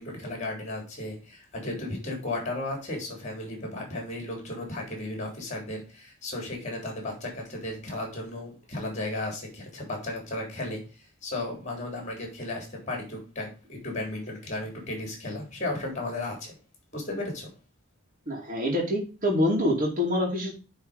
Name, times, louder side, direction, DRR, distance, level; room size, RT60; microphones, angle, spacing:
voice 1, 0.0-10.8 11.2-16.5 16.9-17.5, left 2 dB, 35° left, 1 dB, 3.5 m, -34 dB
voice 2, 18.3-20.5, left 1 dB, 40° right, -2 dB, 2.4 m, -26 dB
9.3 x 4.0 x 5.0 m, 0.32 s
head